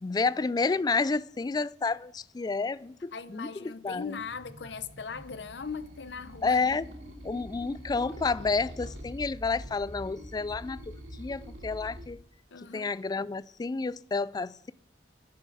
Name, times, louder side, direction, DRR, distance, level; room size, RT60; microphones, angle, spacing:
voice 1, 0.0-4.2 6.4-6.9 7.2-12.2 12.7-14.7, left 4 dB, 20° left, 0.3 m, -30 dB
voice 2, 3.1-6.6 12.5-12.9, left 5 dB, 70° left, 0.8 m, -39 dB
sound 1, 4.2-12.1, equal, 85° right, 2.9 m, -44 dB
11.5 x 9.5 x 4.8 m
head